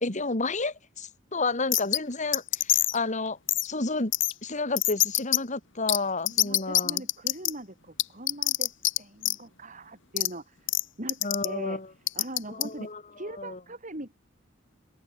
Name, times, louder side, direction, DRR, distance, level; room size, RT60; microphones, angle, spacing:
voice 1, 0.0-3.4 3.6-4.1 4.4-7.0 11.2-11.9 12.5-13.0 13.4-13.6, left 3 dB, 40° left, 2.6 m, -31 dB
sound 1, 1.7-2.0 2.3-3.0 3.5-3.7 4.1-4.3 4.8-5.4 5.9-6.0 6.3-7.5 8.0-9.0 9.2-9.4 10.2-10.3 10.7-10.8 11.1-11.5 12.1-12.6, left 15 dB, 65° left, 1.9 m, -24 dB
voice 2, 6.3-8.7 9.0-10.7 11.0-11.8 12.1-12.9 13.2-14.1, right 1 dB, 40° right, 6.7 m, -41 dB
head